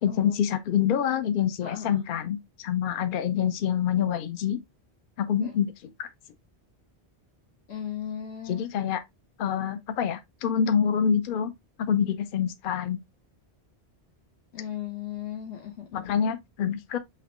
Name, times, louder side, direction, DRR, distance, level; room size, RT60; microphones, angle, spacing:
voice 1, 0.0-4.6 5.2-6.1 8.5-9.0 9.4-11.5 11.8-13.0 15.9-17.0, left 8 dB, 60° left, 0.6 m, -26 dB
voice 2, 1.6-2.0 5.4-5.5 7.7-8.7 14.5-16.0, left 9 dB, 80° left, 1.2 m, -36 dB
5.8 x 3.0 x 2.9 m
omnidirectional pair, 1.1 m